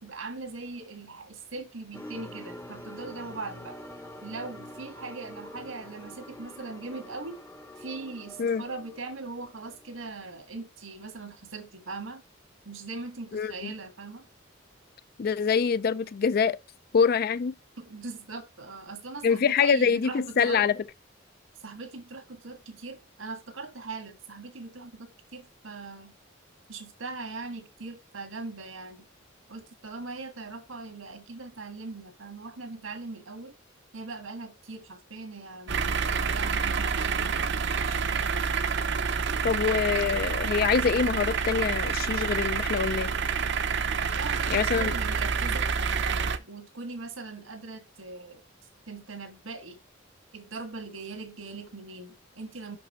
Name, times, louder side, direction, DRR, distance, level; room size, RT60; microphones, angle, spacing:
voice 1, 0.0-3.8 4.2-7.4 7.8-12.2 12.6-14.3 17.8-20.6 21.6-26.1 26.7-29.0 29.5-33.5 33.9-38.0 44.1-45.7 46.5-48.4 48.9-49.8 50.3-52.8, right 3 dB, 85° right, 1.6 m, -40 dB
sound 1, 1.9-10.1, left 1 dB, 15° left, 0.7 m, -45 dB
voice 2, 13.3-13.7 15.2-16.6 16.9-17.5 19.2-20.8 39.4-43.1 44.5-44.9, left 6 dB, 50° left, 0.4 m, -25 dB
sound 2, 35.7-46.4, right 6 dB, 60° right, 0.6 m, -28 dB
5.9 x 5.3 x 4.3 m
head